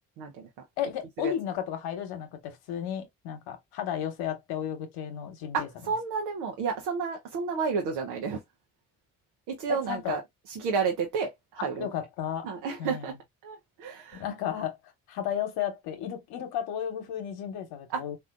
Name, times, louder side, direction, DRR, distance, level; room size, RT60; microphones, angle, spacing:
voice 1, 0.2-0.5 1.2-1.3 5.5-8.4 9.5-10.2 10.5-11.9 12.4-13.1 13.4-14.2 17.9-18.0, right 5 dB, 90° right, 0.7 m, -31 dB
voice 2, 0.8-5.7 9.7-10.2 11.6-12.5 12.8-13.1 14.1-14.8 15.1-18.2, left 9 dB, 85° left, 0.9 m, -33 dB
3.7 x 2.4 x 2.4 m
supercardioid pair, 55°, 36 cm